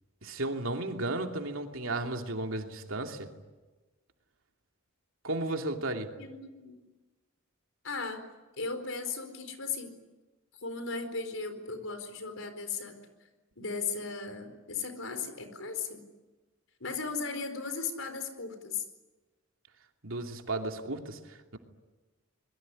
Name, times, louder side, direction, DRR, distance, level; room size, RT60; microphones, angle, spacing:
voice 1, 0.2-3.3 5.2-6.1 20.0-21.6, right 2 dB, 85° right, 3 dB, 2.8 m, -34 dB
voice 2, 6.2-6.8 7.8-8.2 8.6-9.9 10.6-13.0 13.6-16.0 16.8-18.8, left 4 dB, 85° left, 7 dB, 4.4 m, -36 dB
25.5 x 22.0 x 9.9 m, 1.2 s
head